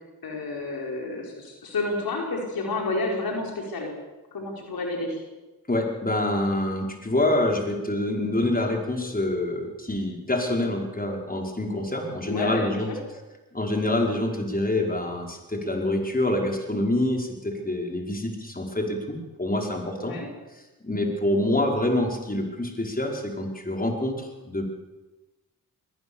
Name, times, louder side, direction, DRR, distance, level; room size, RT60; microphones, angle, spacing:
voice 1, 0.2-3.9 4.3-5.2 12.3-13.0 20.0-20.3, left 2 dB, 75° left, 1 dB, 5.2 m, -30 dB
voice 2, 5.7-12.9 13.5-20.2 20.8-24.6, left 1 dB, 25° left, 2 dB, 4.9 m, -26 dB
21.5 x 19.0 x 7.1 m, 1.1 s
supercardioid pair, 45°, 36 cm